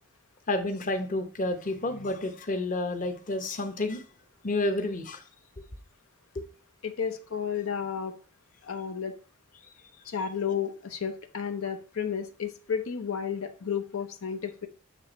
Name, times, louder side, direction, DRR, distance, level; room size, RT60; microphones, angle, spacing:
voice 1, 0.5-4.0 4.4-5.2 6.4-6.5, left 2 dB, 40° left, 6 dB, 0.8 m, -30 dB
voice 2, 6.8-8.1 8.6-9.1 10.0-14.7, left 7 dB, 85° left, 7 dB, 0.7 m, -32 dB
7.6 x 3.3 x 4.0 m, 0.38 s
head